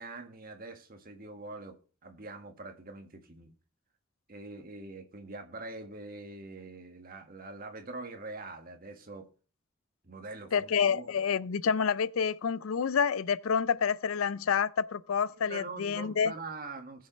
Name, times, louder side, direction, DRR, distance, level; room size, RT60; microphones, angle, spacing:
voice 1, 0.0-3.5 4.3-9.3 10.0-11.1 15.3-17.1, right 3 dB, 45° right, 1.6 m, -44 dB
voice 2, 10.5-16.3, left 6 dB, 80° left, 0.4 m, -28 dB
19.5 x 6.5 x 3.1 m
head